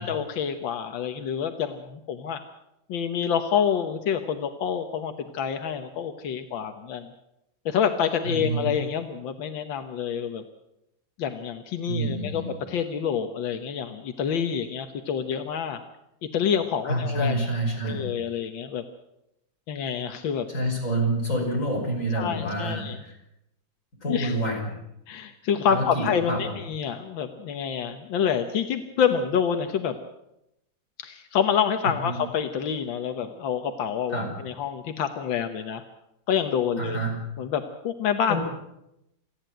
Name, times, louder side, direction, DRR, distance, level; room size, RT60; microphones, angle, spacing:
voice 1, 0.0-2.4 2.9-7.1 7.7-10.4 11.2-15.8 16.3-17.5 17.8-18.8 19.7-20.5 22.2-23.0 24.1-24.4 25.1-30.0 31.0-35.8 36.3-37.0 37.4-38.4, left 7 dB, 85° left, 7 dB, 1.9 m, -27 dB
voice 2, 8.2-8.7 11.9-12.5 16.8-18.0 20.5-23.1 24.0-24.7 25.7-26.6 32.0-32.2 34.1-34.3 36.8-37.1 38.3-38.4, right 1 dB, 40° left, 0 dB, 6.5 m, -28 dB
28.0 x 10.5 x 9.1 m, 0.85 s
omnidirectional pair, 2.0 m